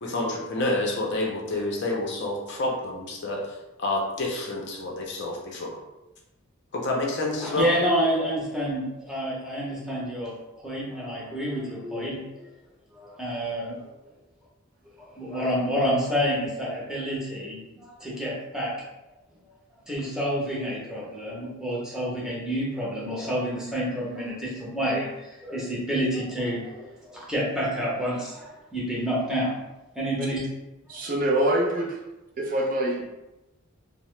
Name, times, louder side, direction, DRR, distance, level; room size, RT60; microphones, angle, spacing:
voice 1, 0.0-3.5 3.8-5.8 6.7-7.7, left 2 dB, 55° left, -1 dB, 0.5 m, -28 dB
voice 2, 7.4-10.3 10.6-12.5 12.9-13.9 15.1-18.7 19.9-29.5 29.9-30.4 30.9-31.0, equal, 5° right, -6 dB, 0.7 m, -28 dB
voice 3, 30.9-32.0 32.4-33.0, right 1 dB, 40° right, -1 dB, 0.4 m, -24 dB
2.7 x 2.0 x 3.1 m, 0.99 s
head